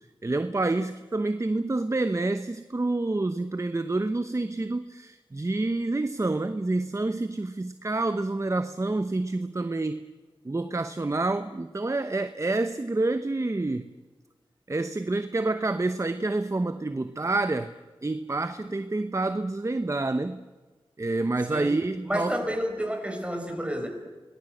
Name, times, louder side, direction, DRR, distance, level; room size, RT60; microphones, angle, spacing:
voice 1, 0.2-10.0 10.4-13.9 14.7-17.7 18.0-20.4 21.0-22.3, right 2 dB, 30° right, 10 dB, 0.9 m, -28 dB
voice 2, 22.0-23.9, equal, 10° right, 3 dB, 6.0 m, -30 dB
28.0 x 20.0 x 8.0 m, 1.3 s
wide cardioid pair, 55°, 10 cm